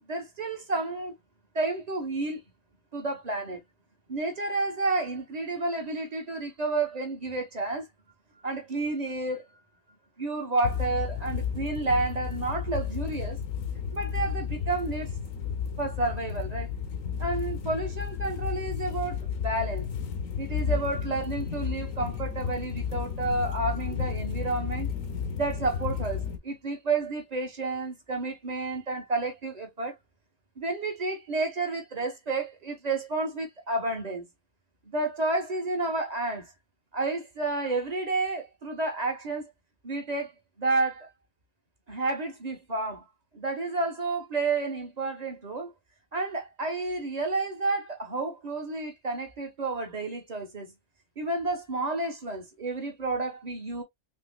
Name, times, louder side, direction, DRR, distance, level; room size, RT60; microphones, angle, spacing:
voice 1, 0.1-1.1 1.5-2.4 2.9-3.6 4.1-7.9 8.4-9.4 10.2-13.4 13.9-15.1 15.8-16.7 17.2-19.9 20.4-24.9 25.3-29.9 30.6-34.3 34.9-36.5 36.9-39.4 39.8-40.3 40.6-41.1 41.9-43.1 43.3-45.7 46.1-50.7 51.2-53.8, right 3 dB, 35° right, 1.0 m, -30 dB
sound 1, 10.6-26.4, left 7 dB, 85° left, 1.2 m, -32 dB
3.7 x 3.3 x 2.2 m
omnidirectional pair, 1.3 m